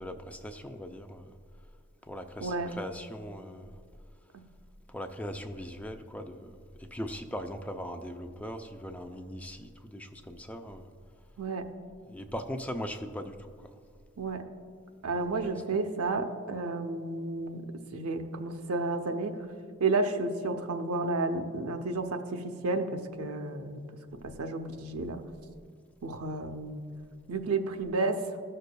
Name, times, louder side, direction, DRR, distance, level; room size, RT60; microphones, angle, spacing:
voice 1, 0.0-1.4 2.0-3.8 4.9-10.9 12.1-13.7 15.1-15.5, equal, 5° left, 6 dB, 0.3 m, -40 dB
voice 2, 15.0-17.6 17.9-19.4 19.8-23.8 24.2-25.2 26.0-26.8 27.3-28.2, right 3 dB, 85° right, 6 dB, 0.7 m, -31 dB
15.5 x 6.5 x 2.2 m, 2.2 s
head